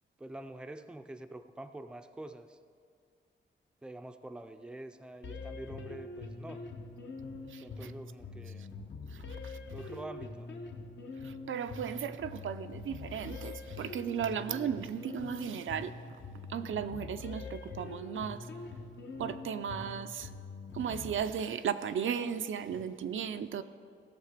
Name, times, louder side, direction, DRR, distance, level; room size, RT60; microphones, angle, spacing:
voice 1, 0.2-2.6 3.8-6.6 7.6-8.7 9.7-10.5, right 1 dB, 5° right, 8 dB, 0.4 m, -46 dB
sound 1, 5.2-21.2, left 3 dB, 65° left, 1.0 m, -44 dB
voice 2, 7.5-7.9 8.6-8.7 9.1-9.6 11.2-16.2 16.5-18.5 19.1-20.3 20.7-23.6, right 8 dB, 75° right, 10 dB, 0.5 m, -36 dB
16.0 x 6.6 x 5.0 m, 2.3 s
wide cardioid pair, 120°, 21 cm